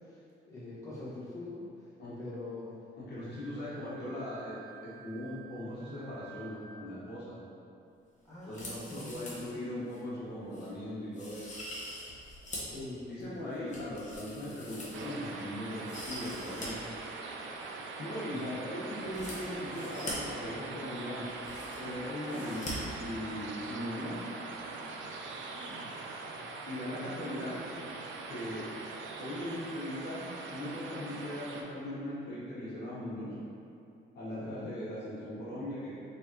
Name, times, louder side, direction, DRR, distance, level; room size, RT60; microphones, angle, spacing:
voice 1, 0.5-1.7 2.2-2.7 3.7-4.0 8.2-9.8 12.6-13.9 18.2-18.5 22.3-22.9 25.5-26.0 26.9-27.2 27.5-27.8 34.4-34.7, left 2 dB, 15° left, -11 dB, 1.4 m, -45 dB
voice 2, 3.1-4.5 4.8-7.3 8.5-11.5 13.1-16.7 18.0-21.2 21.8-24.3 26.7-27.5 28.3-28.7 29.2-33.4 34.1-35.9, left 1 dB, 55° left, -9 dB, 1.3 m, -39 dB
Wind instrument woodwind instrument, 3.3-7.0, right 8 dB, 25° right, 0.6 m, -53 dB
sound 1, 8.4-9.5 9.9-10.0 10.5-10.7 11.1-12.8 13.2-15.3 15.7-16.7 17.0-17.1 19.0-20.1 20.9-21.0 21.2-21.9 22.3-22.7 23.0-23.1, left 1 dB, 40° left, 1.2 m, -44 dB
sound 2, 14.9-31.6, right 3 dB, 75° right, 0.5 m, -42 dB
3.9 x 3.3 x 3.0 m, 2.6 s
cardioid pair, 90°, 20 cm